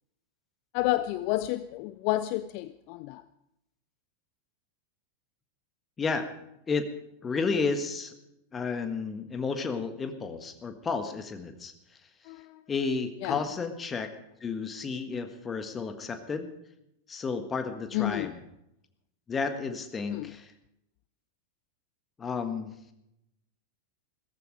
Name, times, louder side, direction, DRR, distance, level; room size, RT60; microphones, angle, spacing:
voice 1, 0.7-3.2 12.3-12.6 13.2-13.4 17.9-18.3 20.1-20.3, left 16 dB, 45° left, 0.4 m, -30 dB
voice 2, 7.2-8.1 8.5-11.7 12.7-14.1 14.4-16.5 17.1-18.4 19.3-20.5 22.2-22.7, left 4 dB, 20° left, 1.5 m, -32 dB
16.5 x 14.5 x 5.0 m
figure-of-eight pair, 90°, 0 cm